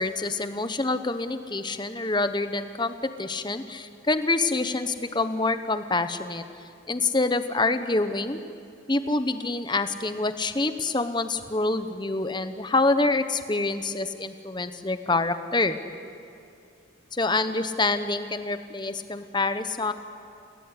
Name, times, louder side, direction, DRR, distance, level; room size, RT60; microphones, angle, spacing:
voice 1, 0.0-6.4 6.9-8.4 8.9-15.8 17.1-19.9, left 3 dB, 20° left, 10 dB, 1.1 m, -26 dB
29.0 x 18.5 x 9.9 m, 2.5 s
head